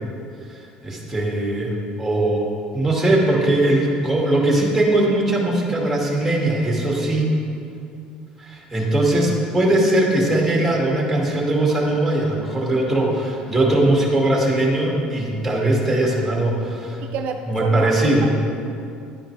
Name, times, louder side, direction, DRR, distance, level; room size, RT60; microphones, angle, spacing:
voice 1, 0.5-2.5 2.7-7.3 8.4-17.0 17.5-18.3, right 1 dB, 5° right, -2 dB, 2.2 m, -20 dB
voice 2, 17.0-18.3, right 6 dB, 65° right, 6 dB, 0.6 m, -29 dB
10.5 x 10.0 x 3.3 m, 2.5 s
cardioid pair, 120°, 3 cm